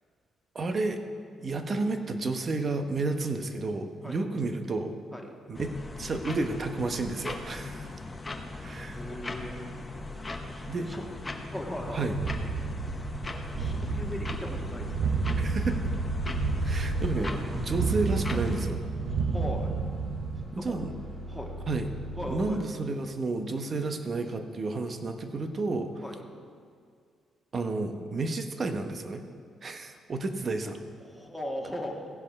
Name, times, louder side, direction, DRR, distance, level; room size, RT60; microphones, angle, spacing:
voice 1, 0.5-1.0 1.4-4.9 5.5-7.9 8.6-9.0 10.7-10.9 11.9-12.2 15.4-15.9 16.6-18.8 20.5-21.0 21.7-21.9 22.3-26.0 27.5-29.2 29.6-30.8, right 3 dB, 40° right, 7 dB, 0.9 m, -31 dB
sound 1, 5.5-18.7, left 2 dB, 20° left, 1.0 m, -39 dB
voice 2, 8.9-11.0 11.5-12.0 12.7-12.9 13.4-15.1 15.7-15.8 19.3-19.7 20.5-20.8 21.3-21.6 22.2-22.6 26.0-26.2 31.0-32.1, equal, ahead, 0 dB, 1.6 m, -39 dB
sound 2, 11.8-20.5, right 4 dB, 85° right, 0.8 m, -31 dB
sound 3, 13.0-22.4, equal, 20° right, 2.6 m, -38 dB
16.0 x 5.4 x 5.3 m, 2.2 s
cardioid pair, 90°, 0 cm